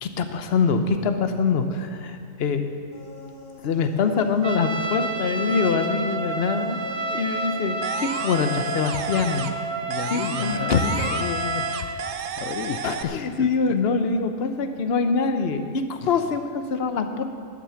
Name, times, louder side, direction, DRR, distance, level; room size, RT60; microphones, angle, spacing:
voice 1, 0.0-2.7 3.6-6.8 7.1-9.5 10.1-11.2 12.8-17.2, left 5 dB, 55° left, 7 dB, 1.0 m, -24 dB
sound 1, 2.9-8.1, left 1 dB, 35° left, 1.6 m, -44 dB
Trumpet, 4.4-12.1, right 2 dB, 40° right, 0.4 m, -30 dB
sound 2, 7.8-9.6 9.9-13.0, right 6 dB, 65° right, 0.9 m, -32 dB
voice 2, 9.8-13.8, left 9 dB, 80° left, 9 dB, 1.0 m, -33 dB
12.0 x 9.2 x 7.1 m, 2.2 s
omnidirectional pair, 1.4 m